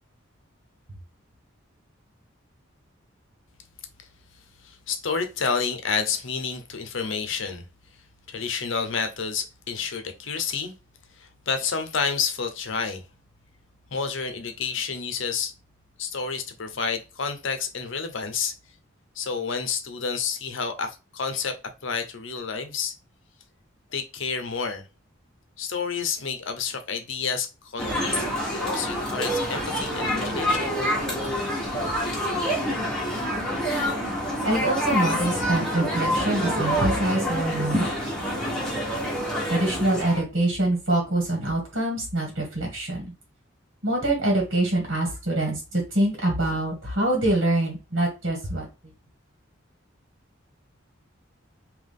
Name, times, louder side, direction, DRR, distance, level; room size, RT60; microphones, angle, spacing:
voice 1, 4.6-7.6 8.3-10.7 11.1-13.0 13.9-15.5 16.0-18.5 19.2-21.6 21.8-23.0 23.9-24.8 25.6-28.2 28.5-30.7, left 5 dB, 65° left, 0.8 m, -29 dB
sound 1, 27.8-40.2, equal, 5° left, 1.1 m, -27 dB
voice 2, 34.4-37.9 39.5-43.0 43.8-48.7, right 1 dB, 70° right, 2.1 m, -25 dB
3.6 x 3.0 x 3.6 m
head